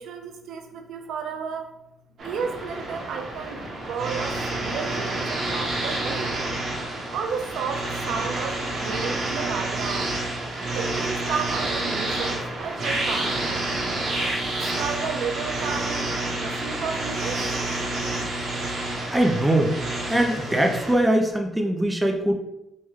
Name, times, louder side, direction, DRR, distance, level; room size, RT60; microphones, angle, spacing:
voice 1, 0.0-1.7 2.2-6.4 7.1-10.1 10.7-13.8 14.5-16.1 16.4-17.4, right 6 dB, 80° right, 5 dB, 0.3 m, -32 dB
sound 1, 2.2-20.9, right 2 dB, 60° right, 0.9 m, -29 dB
voice 2, 19.1-19.7 20.1-22.3, right 1 dB, 10° right, 3 dB, 0.4 m, -21 dB
3.5 x 2.1 x 3.0 m, 0.88 s
cardioid pair, 90°, 0 cm